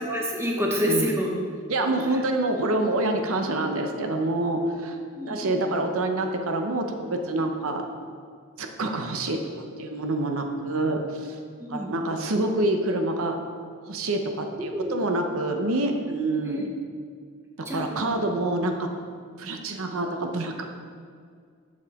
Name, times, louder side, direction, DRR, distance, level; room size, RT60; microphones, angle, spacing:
voice 1, 0.0-1.3 1.7-2.2 4.5-4.7 5.2-5.6 11.6-12.0 14.7-15.0 16.4-16.6 17.6-18.1, equal, 10° right, 0 dB, 0.7 m, -29 dB
voice 2, 1.7-4.9 5.2-7.9 8.6-9.4 9.8-11.4 11.7-13.4 13.9-16.7 17.7-18.9 19.4-20.7, right 2 dB, 70° right, 4 dB, 0.7 m, -27 dB
7.2 x 7.1 x 3.5 m, 2.1 s
head